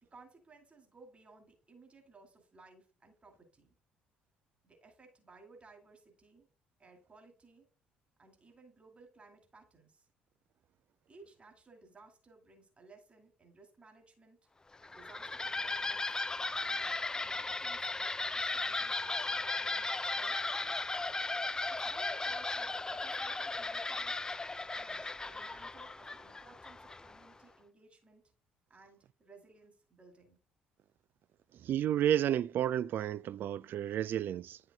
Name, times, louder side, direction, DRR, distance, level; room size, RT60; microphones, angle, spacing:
voice 1, 0.0-3.7 4.6-6.5 6.8-7.7 8.2-10.1 11.1-14.4 14.9-16.1 16.6-20.8 21.7-24.2 24.7-28.3 28.7-30.4, right 3 dB, 25° right, 2.5 m, -59 dB
sound 1, 14.7-27.3, left 3 dB, 15° left, 0.4 m, -36 dB
voice 2, 31.6-34.6, right 11 dB, 50° right, 0.4 m, -31 dB
10.0 x 5.8 x 2.3 m
figure-of-eight pair, 50°, 4 cm